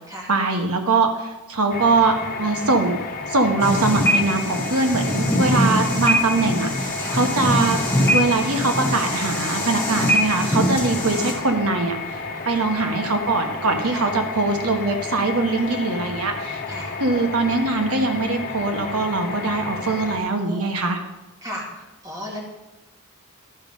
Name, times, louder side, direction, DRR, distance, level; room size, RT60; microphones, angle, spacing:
voice 1, 0.3-3.0 3.3-7.8 8.1-12.2 12.4-16.6 17.0-21.0, right 3 dB, 70° right, 4 dB, 1.3 m, -22 dB
sound 1, 1.7-20.2, left 4 dB, 40° left, 1.1 m, -32 dB
sound 2, 3.6-11.3, equal, 10° left, 2.7 m, -23 dB
voice 2, 12.3-12.8 13.9-14.1 16.7-16.9 20.4-20.7 21.4-22.5, equal, 15° right, -2 dB, 2.1 m, -36 dB
11.5 x 5.4 x 5.2 m, 1.1 s
head